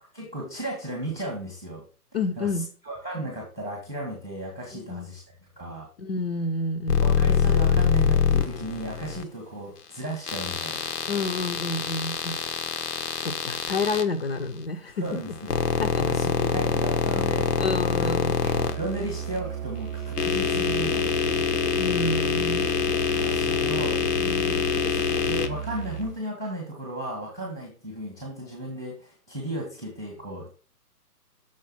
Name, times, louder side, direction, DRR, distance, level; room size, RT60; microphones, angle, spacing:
voice 1, 0.1-1.8 2.4-5.2 5.6-5.9 7.0-10.9 15.0-15.3 16.0-17.6 18.0-18.4 18.7-21.5 23.1-24.4 24.9-30.5, right 1 dB, 5° right, 0.5 m, -35 dB
voice 2, 2.1-2.7 4.7-5.1 6.0-7.2 11.1-12.4 13.2-15.0 15.8-16.0 17.6-18.4 21.8-22.7 24.2-24.7, left 3 dB, 40° left, 0.5 m, -29 dB
sound 1, 6.9-9.2 10.3-14.0 15.0-19.4 20.0-25.5, left 6 dB, 85° left, 1.0 m, -25 dB
Musical instrument, 18.4-26.2, right 9 dB, 60° right, 0.6 m, -34 dB
6.4 x 3.8 x 5.5 m
hypercardioid pair, 150°, 46 cm